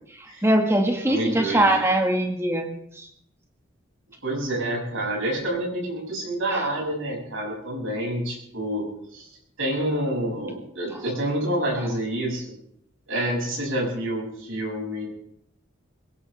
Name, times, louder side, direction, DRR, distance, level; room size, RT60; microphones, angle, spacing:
voice 1, 0.4-3.1 6.5-6.7, right 1 dB, 15° right, 4 dB, 1.7 m, -22 dB
voice 2, 1.1-1.8 4.2-8.8 9.1-9.3 9.6-12.5 13.1-15.1, right 1 dB, 85° right, -1 dB, 7.2 m, -28 dB
21.5 x 18.0 x 3.5 m, 0.71 s
head